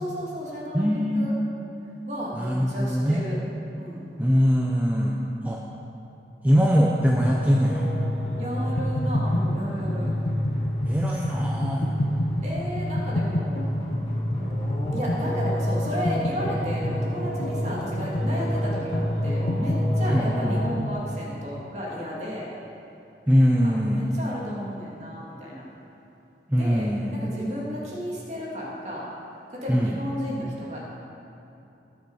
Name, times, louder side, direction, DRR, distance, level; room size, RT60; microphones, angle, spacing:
voice 1, 0.0-1.3 2.1-3.4 3.8-4.0 8.4-10.1 12.4-13.6 14.9-22.5 23.6-25.7 26.5-29.1 29.6-30.8, equal, 40° right, -5 dB, 2.5 m, -33 dB
voice 2, 0.7-1.3 2.3-3.2 4.2-5.2 5.4-5.6 6.4-7.9 10.9-11.8 20.0-20.5 23.3-24.1 26.5-27.3 29.7-29.9, equal, 10° right, -2 dB, 0.6 m, -22 dB
sound 1, 7.1-20.7, equal, 30° left, 3.3 m, -28 dB
sound 2, 8.8-21.0, left 1 dB, 70° left, 1.0 m, -30 dB
18.5 x 6.9 x 4.9 m, 2.8 s
head